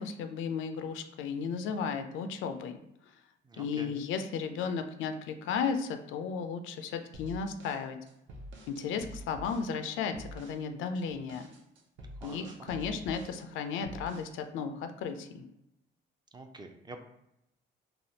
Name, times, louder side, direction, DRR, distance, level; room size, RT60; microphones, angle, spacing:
voice 1, 0.0-2.8 3.6-8.0 8.7-11.5 12.2-15.4, left 6 dB, 80° left, 8 dB, 0.4 m, -34 dB
voice 2, 3.4-3.9 12.2-12.7 16.3-17.0, right 3 dB, 20° right, 5 dB, 0.4 m, -47 dB
sound 1, 7.1-9.7 10.1-10.6 11.0-13.4 13.8-14.4, equal, 70° right, 0.6 m, -47 dB
3.3 x 2.3 x 2.7 m, 0.83 s
cardioid pair, 90°, 20 cm